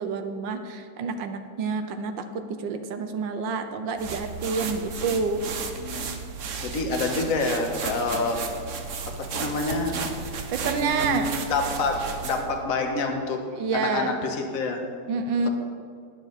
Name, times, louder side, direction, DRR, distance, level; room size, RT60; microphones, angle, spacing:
voice 1, 0.0-5.4 10.5-11.3 13.6-14.1 15.1-15.5, right 4 dB, 75° right, 8 dB, 1.4 m, -28 dB
sound 1, 4.0-12.5, right 5 dB, 55° right, 0.9 m, -34 dB
voice 2, 6.6-8.4 9.1-9.9 10.7-13.4 13.7-14.8, left 3 dB, 50° left, 3 dB, 1.5 m, -27 dB
19.5 x 7.2 x 4.1 m, 2.2 s
omnidirectional pair, 2.1 m